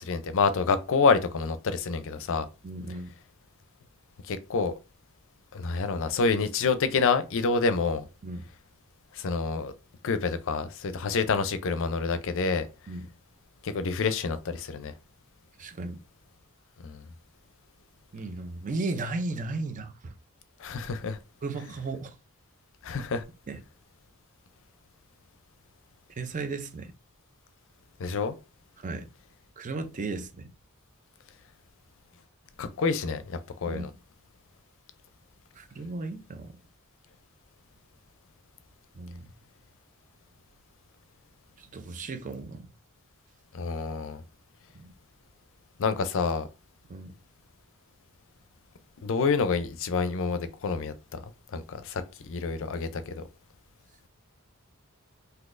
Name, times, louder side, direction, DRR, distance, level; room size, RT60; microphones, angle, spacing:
voice 1, 0.0-2.5 4.3-4.7 5.5-8.1 9.2-9.7 10.0-12.7 13.6-14.9 16.8-17.0 20.6-21.2 22.8-23.2 28.0-28.3 32.6-33.9 43.5-44.2 45.8-46.5 49.0-51.2 51.5-53.2, left 4 dB, 65° left, 0.5 m, -27 dB
voice 2, 2.6-3.1 8.2-8.5 12.9-13.1 15.6-16.0 18.1-20.1 21.4-22.1 23.5-23.6 26.2-26.9 28.8-29.1 29.6-30.5 33.7-33.9 35.6-36.5 38.9-39.3 41.6-42.6 44.7-44.9 46.9-47.1, right 3 dB, 35° right, 0.5 m, -35 dB
3.9 x 2.7 x 2.5 m
head